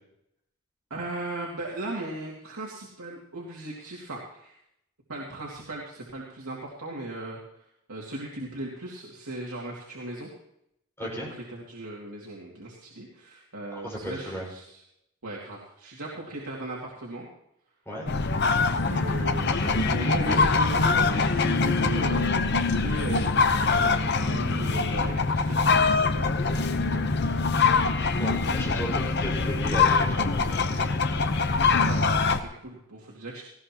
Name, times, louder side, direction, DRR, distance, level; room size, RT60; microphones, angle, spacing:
voice 1, 0.9-4.6 5.1-7.4 7.9-10.3 11.0-14.8 15.2-17.3 18.6-28.2 31.6-33.4, right 1 dB, 85° right, -4 dB, 2.4 m, -38 dB
voice 2, 11.0-11.3 13.7-14.4 17.8-18.1 28.2-31.0, right 1 dB, 10° left, -3 dB, 5.0 m, -35 dB
sound 1, 18.1-32.4, left 4 dB, 50° left, 0.8 m, -24 dB
18.5 x 16.0 x 3.0 m, 0.78 s
head